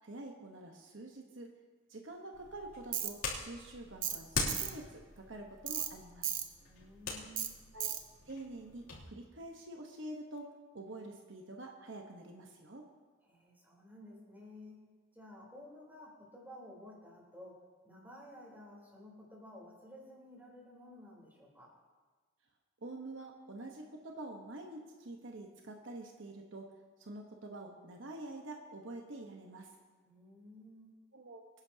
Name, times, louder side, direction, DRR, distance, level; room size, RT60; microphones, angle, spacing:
voice 1, 0.0-1.5 1.9-6.3 7.7-7.9 8.2-12.9 22.8-26.7 27.0-29.7 31.1-31.4, right 2 dB, 65° right, 2 dB, 1.1 m, -47 dB
sound 1, 2.3-9.1, left 4 dB, 90° left, 2.8 m, -43 dB
Tools, 2.9-3.1 4.0-4.2 4.5-4.7 5.7-5.9 6.2-6.5 7.4-7.5 7.8-8.0, right 10 dB, 40° right, 0.9 m, -35 dB
voice 2, 6.6-7.6 13.2-14.8 15.1-17.5 17.8-21.7 30.0-30.9, left 1 dB, 10° right, -4 dB, 3.6 m, -53 dB
25.0 x 10.5 x 2.8 m, 1.4 s
head